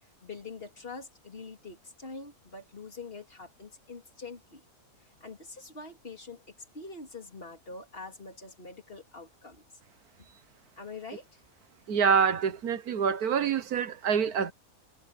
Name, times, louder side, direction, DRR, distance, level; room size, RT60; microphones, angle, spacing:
voice 1, 0.0-4.6 5.0-6.4 6.7-9.6 10.8-11.4, left 4 dB, 40° left, 3.7 m, -44 dB
voice 2, 11.9-14.5, right 7 dB, 80° right, 1.7 m, -26 dB
omnidirectional pair, 1.6 m